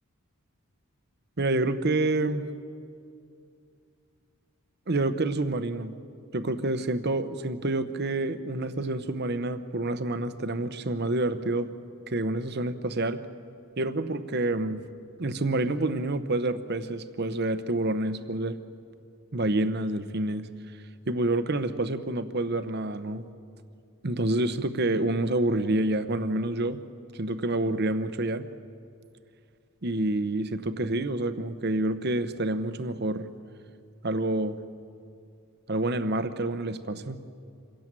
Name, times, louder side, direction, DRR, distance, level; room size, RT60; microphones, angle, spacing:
voice 1, 1.4-2.5 4.9-5.9 6.3-11.7 12.1-13.2 13.8-14.9 15.2-18.6 19.3-20.5 21.1-23.2 24.0-26.8 27.1-28.5 29.8-33.3 34.0-34.6 35.7-37.2, right 2 dB, 50° right, 11 dB, 0.9 m, -28 dB
26.5 x 17.0 x 7.6 m, 2.4 s
head